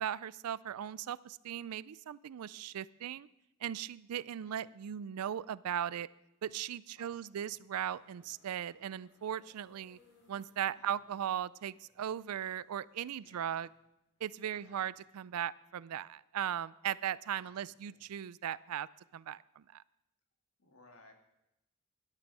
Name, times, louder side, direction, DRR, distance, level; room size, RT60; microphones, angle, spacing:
voice 1, 0.0-3.3 3.6-6.1 6.4-10.0 10.3-13.7 14.2-18.9 19.1-19.8, right 10 dB, 80° right, 20 dB, 0.4 m, -38 dB
voice 2, 4.4-4.7 6.9-7.6 10.7-10.9 13.1-13.7 14.5-14.9 17.4-18.1 20.6-21.1, left 2 dB, 65° left, 4 dB, 1.9 m, -63 dB
sound 1, 7.9-16.0, left 2 dB, 85° left, 5.2 m, -70 dB
11.5 x 10.5 x 5.4 m, 0.87 s
head